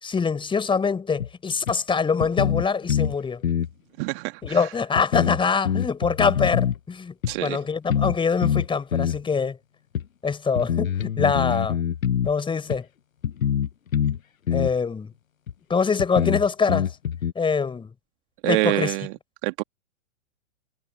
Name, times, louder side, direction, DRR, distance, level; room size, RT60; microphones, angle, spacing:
voice 1, 0.0-3.4 4.4-7.1 7.4-9.6 10.2-11.8 12.3-12.9 14.5-15.1 15.7-16.9 17.4-17.9 18.4-18.9, left 5 dB, 10° left, 5.4 m, -24 dB
sound 1, 1.2-1.3 1.7-1.8 2.2-3.2 3.4-3.7 4.4-4.5 5.0-6.8 7.2-7.3 7.9-8.2 8.4-9.2 10.0-10.1 10.6-12.3 12.7-12.8 13.2-14.2 14.5-14.7 15.5-15.6 16.0-17.3, left 9 dB, 75° left, 1.2 m, -24 dB
voice 2, 4.0-4.7 7.3-7.6 18.4-19.1 19.4-19.6, right 26 dB, 40° right, 1.9 m, -26 dB
figure-of-eight pair, 115°, 41 cm